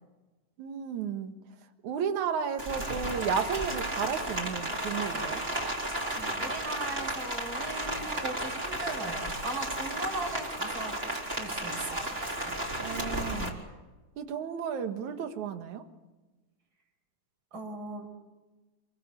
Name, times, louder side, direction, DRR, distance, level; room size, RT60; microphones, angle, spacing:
voice 1, 0.6-1.3 1.8-5.4 12.8-13.6 14.2-15.8, right 7 dB, 75° right, 7 dB, 3.0 m, -33 dB
Rain, 2.6-13.5, right 1 dB, 20° right, 4.3 m, -33 dB
voice 2, 6.2-11.0 11.4-12.7 17.5-18.1, right 2 dB, 40° right, 4 dB, 5.8 m, -38 dB
28.5 x 22.5 x 6.9 m, 1.2 s
omnidirectional pair, 3.4 m